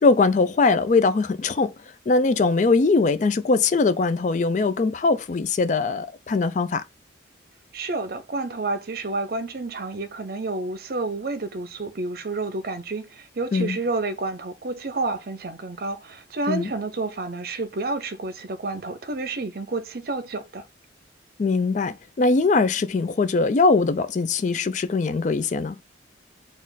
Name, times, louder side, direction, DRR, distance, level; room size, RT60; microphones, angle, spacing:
voice 1, 0.0-1.7 2.1-6.8 13.5-13.8 16.5-16.7 21.4-25.8, left 3 dB, 40° left, 0.3 m, -21 dB
voice 2, 7.7-20.7, right 3 dB, 55° right, 0.6 m, -30 dB
4.2 x 2.4 x 3.9 m
head